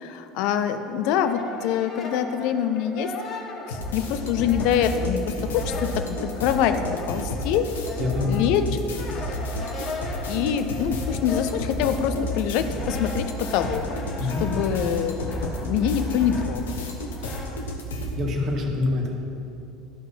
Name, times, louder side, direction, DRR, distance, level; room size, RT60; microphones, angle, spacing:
voice 1, 0.0-3.1 3.3-5.3 5.6-7.7 8.3-8.6 10.2-16.9, left 9 dB, 55° left, 8 dB, 0.6 m, -25 dB
Brass instrument, 0.7-5.1 5.4-17.5, left 2 dB, 40° left, 1.6 m, -38 dB
sound 1, 3.7-18.1, left 1 dB, 75° left, 1.2 m, -31 dB
voice 2, 8.0-8.5 14.2-14.4 17.2-17.3 18.2-19.1, left 3 dB, 45° right, 1 dB, 1.6 m, -26 dB
13.5 x 5.5 x 5.6 m, 2.8 s
figure-of-eight pair, 70°, 0 cm